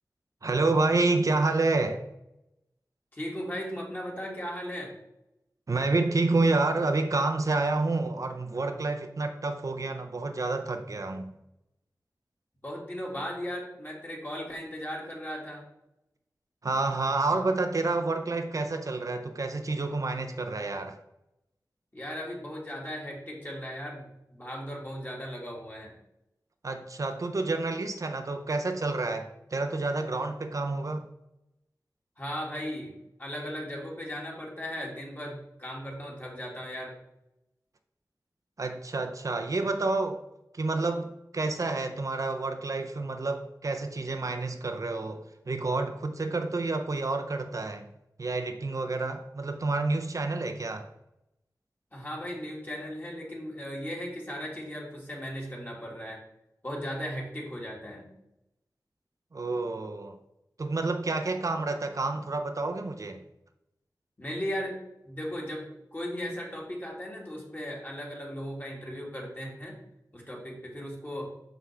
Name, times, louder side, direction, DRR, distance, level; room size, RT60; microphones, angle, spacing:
voice 1, 0.4-2.0 5.7-11.3 16.6-21.0 26.6-31.1 38.6-40.2 40.5-47.9 48.2-50.9 59.3-60.2 60.6-63.2, right 3 dB, 55° right, 0.5 m, -29 dB
voice 2, 3.1-4.9 12.6-15.6 21.9-25.9 32.2-32.9 33.2-36.9 51.9-56.2 56.6-58.1 64.2-64.8 65.0-69.8 70.1-71.3, equal, 30° left, 2.0 m, -37 dB
6.0 x 5.7 x 3.3 m
wide cardioid pair, 85°, 7 cm